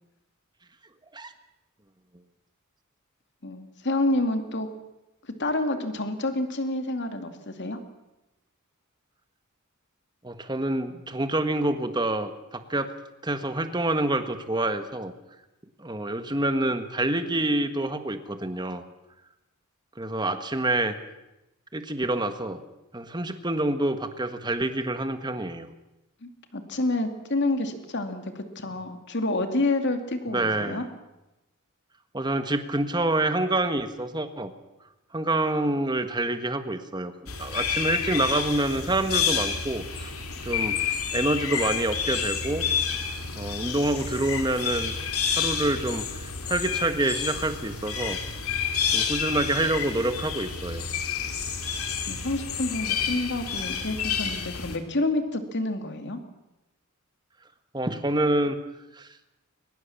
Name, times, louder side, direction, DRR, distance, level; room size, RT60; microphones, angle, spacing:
voice 1, 3.4-4.7 5.4-7.8 26.2-30.9 52.1-56.2, left 2 dB, 55° left, 7 dB, 2.5 m, -28 dB
voice 2, 10.2-12.9 13.2-15.1 15.8-18.8 20.0-20.9 21.7-22.6 22.9-25.7 30.3-30.8 32.1-34.5 35.1-40.1 40.4-42.7 43.4-44.9 45.3-48.2 48.5-50.9 57.7-58.6 59.0-59.1, right 2 dB, 20° right, 9 dB, 1.6 m, -27 dB
sound 1, 37.3-54.8, left 7 dB, 75° left, 2.7 m, -29 dB
22.0 x 20.5 x 7.2 m, 0.96 s
head